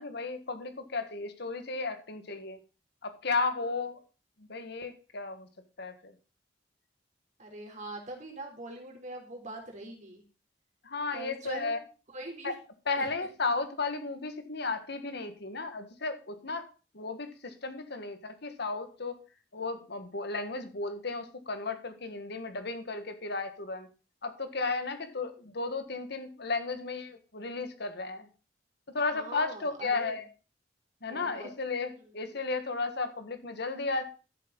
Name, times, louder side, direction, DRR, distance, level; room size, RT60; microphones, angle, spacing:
voice 1, 0.0-2.6 3.0-4.0 4.5-5.5 5.8-6.1 10.8-11.8 12.4-12.6 12.9-16.7 16.9-19.2 19.5-23.9 24.2-28.3 28.9-30.3 31.0-34.1, left 3 dB, 65° left, 8 dB, 1.6 m, -34 dB
voice 2, 7.4-10.2 11.1-11.8 12.1-12.6 13.0-13.1 29.1-30.2 31.1-31.5 32.0-32.4, right 2 dB, 40° right, 1 dB, 3.7 m, -43 dB
13.0 x 7.6 x 4.0 m, 0.34 s
head